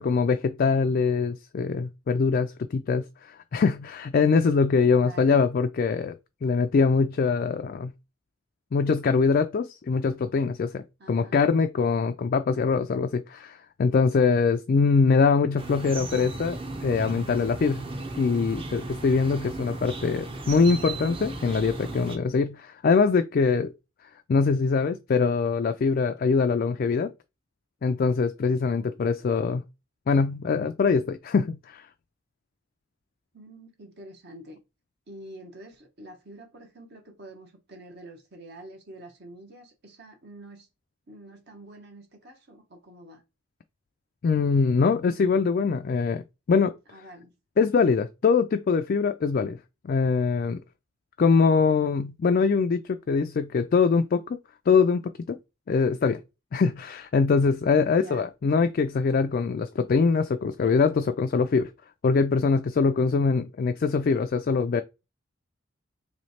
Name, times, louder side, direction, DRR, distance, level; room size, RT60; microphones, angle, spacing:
voice 1, 0.0-7.9 8.7-17.9 18.1-23.7 24.3-27.1 27.8-29.6 30.1-31.9 44.2-46.7 47.6-49.6 49.8-50.6 51.2-54.4 54.7-55.0 55.3-55.4 55.7-56.2 56.5-61.7 62.0-64.8, left 5 dB, 45° left, 0.3 m, -23 dB
voice 2, 4.9-5.4 11.0-11.4 28.7-29.0 33.3-34.6 35.1-40.7 41.1-43.2 46.9-47.3 57.9-58.3, right 1 dB, 55° right, 1.0 m, -47 dB
sound 1, 15.6-22.2, right 2 dB, 25° right, 0.7 m, -36 dB
3.2 x 3.1 x 4.1 m
head